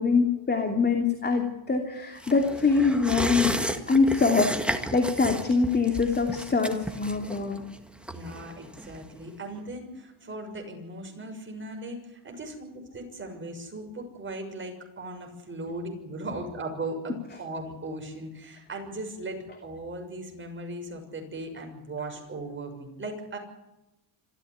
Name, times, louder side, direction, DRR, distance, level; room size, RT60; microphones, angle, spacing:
voice 1, 0.0-7.6, left 4 dB, 20° left, 4 dB, 2.8 m, -24 dB
sound 1, 2.2-9.3 9.6-9.7, right 1 dB, ahead, 1.7 m, -33 dB
voice 2, 8.1-23.4, right 2 dB, 25° right, 3 dB, 6.5 m, -38 dB
26.0 x 14.5 x 10.0 m, 0.95 s
cardioid pair, 135°, 49 cm